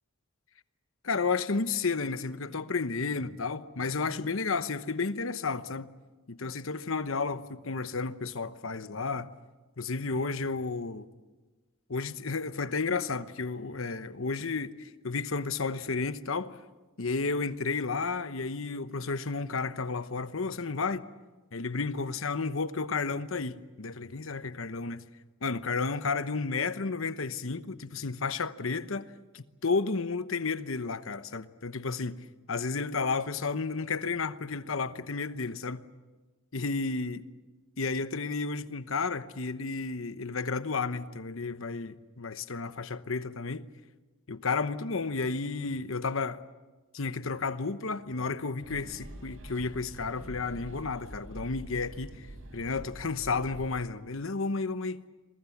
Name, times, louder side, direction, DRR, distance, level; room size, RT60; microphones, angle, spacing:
voice 1, 1.0-5.9 6.3-9.3 9.8-11.1 11.9-16.6 17.0-21.1 21.5-25.0 25.4-29.1 29.3-32.2 32.5-35.8 36.5-37.2 37.8-43.7 44.3-46.4 46.9-52.3 52.5-55.0, left 4 dB, 75° left, 1.0 m, -32 dB
sound 1, 48.6-53.7, right 1 dB, 70° right, 7.2 m, -45 dB
28.5 x 23.0 x 7.2 m
head